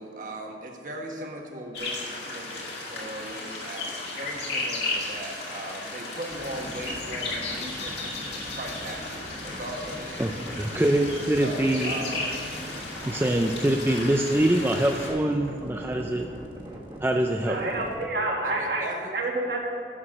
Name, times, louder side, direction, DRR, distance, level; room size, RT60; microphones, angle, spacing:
voice 1, 0.0-8.0 8.2-10.3 11.3-12.3 18.4-19.1, right 1 dB, 50° right, 2 dB, 1.3 m, -38 dB
sound 1, 1.7-15.1, left 2 dB, 75° left, 2.1 m, -34 dB
sound 2, 6.3-18.1, equal, 30° right, 1.4 m, -42 dB
voice 2, 10.6-11.9 13.0-16.3 17.0-17.6, right 1 dB, 15° right, 2 dB, 0.4 m, -24 dB
voice 3, 17.4-18.8 19.1-19.6, right 2 dB, 65° right, -1 dB, 1.8 m, -28 dB
11.0 x 6.4 x 6.4 m, 2.7 s
head